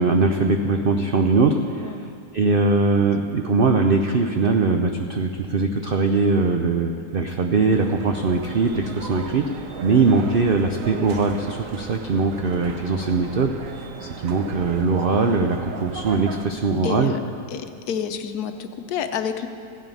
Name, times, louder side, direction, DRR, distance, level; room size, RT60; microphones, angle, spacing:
voice 1, 0.0-9.5 9.8-17.1, right 4 dB, 80° right, 5 dB, 0.5 m, -21 dB
sound 1, 7.7-16.5, right 6 dB, 60° right, 1.1 m, -37 dB
voice 2, 16.8-17.2 17.5-19.5, left 7 dB, 75° left, 8 dB, 1.2 m, -29 dB
15.5 x 9.0 x 5.4 m, 2.4 s
omnidirectional pair, 1.7 m